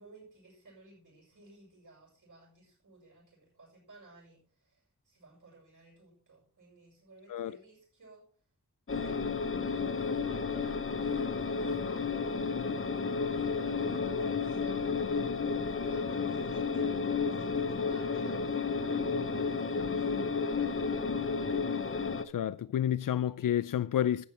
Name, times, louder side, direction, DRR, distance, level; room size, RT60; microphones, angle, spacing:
voice 1, 0.0-8.2 8.9-12.3 13.3-18.7 19.2-21.0, right 2 dB, 70° right, 6.2 m, -55 dB
sound 1, 8.9-22.2, left 5 dB, 40° left, 0.9 m, -32 dB
voice 2, 22.3-24.3, left 10 dB, 90° left, 0.5 m, -30 dB
12.5 x 8.5 x 4.4 m
wide cardioid pair, 95°, 32 cm